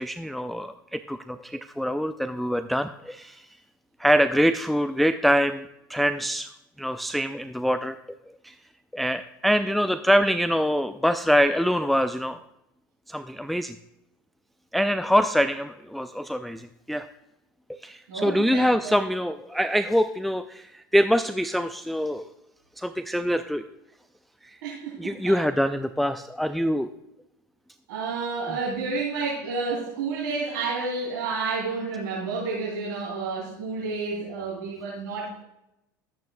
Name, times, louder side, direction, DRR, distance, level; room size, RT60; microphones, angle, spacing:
voice 1, 0.0-3.4 4.0-6.5 6.8-8.0 8.4-8.5 8.9-12.4 13.1-13.7 14.7-17.1 17.8-22.3 22.8-23.7 24.4-24.6 25.0-26.9 28.5-28.6, equal, ahead, 10 dB, 0.4 m, -24 dB
voice 2, 18.1-18.9 24.6-25.4 27.9-35.3, right 4 dB, 70° right, -4 dB, 3.0 m, -30 dB
13.5 x 9.3 x 2.2 m, 0.84 s
hypercardioid pair, 80°, 11 cm